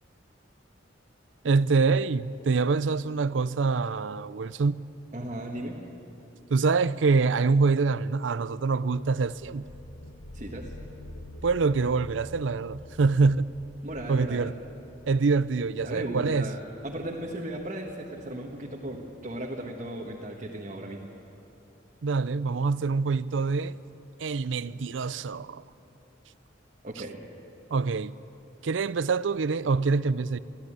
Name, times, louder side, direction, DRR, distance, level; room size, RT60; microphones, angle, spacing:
voice 1, 1.4-4.8 6.5-9.6 11.4-13.5 14.1-14.5 15.1-16.5 22.0-23.8 24.2-25.6 27.7-28.1 28.6-30.4, right 4 dB, 80° right, 0.5 m, -25 dB
voice 2, 5.1-5.8 10.3-10.7 13.8-14.5 15.8-16.6 16.8-21.1 26.8-27.2, right 1 dB, 40° right, 1.5 m, -36 dB
sound 1, 8.9-20.3, left 1 dB, 75° left, 1.1 m, -48 dB
23.5 x 15.0 x 8.8 m
head